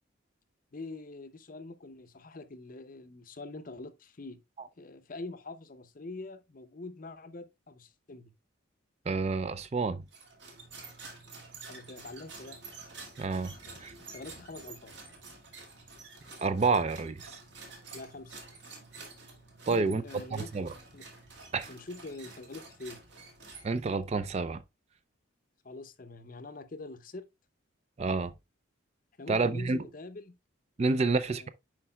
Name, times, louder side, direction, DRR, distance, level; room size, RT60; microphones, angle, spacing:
voice 1, 0.7-4.4 4.8-8.3 11.7-12.6 13.7-14.9 17.9-18.4 19.7-21.1 21.7-23.0 25.6-27.3 29.2-30.4 31.0-31.5, left 2 dB, 40° left, 0.6 m, -44 dB
voice 2, 9.1-10.0 13.2-13.5 13.8-13.9 16.4-17.4 19.7-20.0 20.5-20.7 21.5-21.7 23.6-24.6 28.0-28.3 29.3-29.8 30.8-31.5, right 4 dB, 30° right, 0.3 m, -28 dB
sound 1, 10.1-24.0, right 3 dB, 60° right, 2.0 m, -49 dB
9.8 x 4.6 x 2.3 m
head